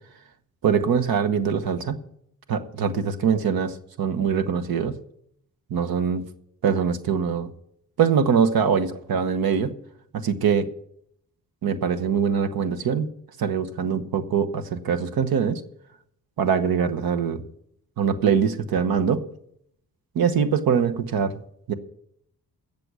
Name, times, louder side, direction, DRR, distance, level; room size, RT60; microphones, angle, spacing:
voice 1, 0.6-2.0 2.5-5.0 5.7-6.2 6.6-7.5 8.0-9.7 10.1-10.7 11.6-13.1 13.4-15.6 16.4-17.4 18.0-19.2 20.1-21.4 21.7-21.8, right 7 dB, 75° right, 8 dB, 1.1 m, -23 dB
16.5 x 6.9 x 6.2 m, 0.71 s
cardioid pair, 105°, 36 cm